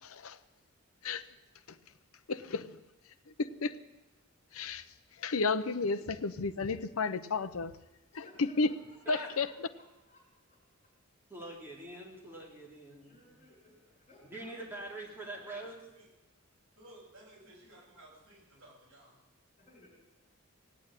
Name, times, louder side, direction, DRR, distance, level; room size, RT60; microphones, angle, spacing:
voice 1, 2.3-2.7 3.4-3.8 4.5-4.8 5.2-7.7 8.1-8.7 9.1-9.5, left 4 dB, 75° left, 0.7 m, -32 dB
voice 2, 8.1-10.2 10.5-10.9 13.0-14.8 19.6-19.9, left 1 dB, 35° left, 5.6 m, -61 dB
voice 3, 11.3-13.4 14.3-15.8, right 1 dB, 10° right, 3.5 m, -44 dB
voice 4, 15.2-16.1 16.8-19.2, right 1 dB, 60° right, 7.5 m, -57 dB
18.5 x 8.7 x 8.9 m
head